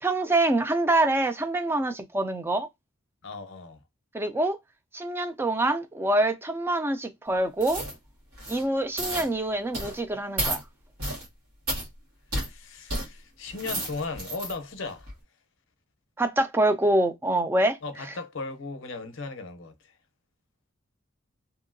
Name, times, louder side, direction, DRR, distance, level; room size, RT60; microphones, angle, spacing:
voice 1, 0.0-2.7 4.1-4.6 4.9-7.8 8.5-10.6 16.2-17.8, right 2 dB, 10° right, 0.3 m, -25 dB
voice 2, 3.2-3.8 12.3-15.1 17.8-19.9, left 3 dB, 60° left, 0.6 m, -37 dB
sound 1, 7.6-8.0 8.3-8.6 9.0-9.3 9.7-10.0 10.4-10.6 11.0-11.3 11.7-11.9 12.3-12.5 12.9-13.1 13.5-14.5 15.0-15.1, right 1 dB, 90° right, 1.6 m, -31 dB
2.8 x 2.6 x 2.5 m
head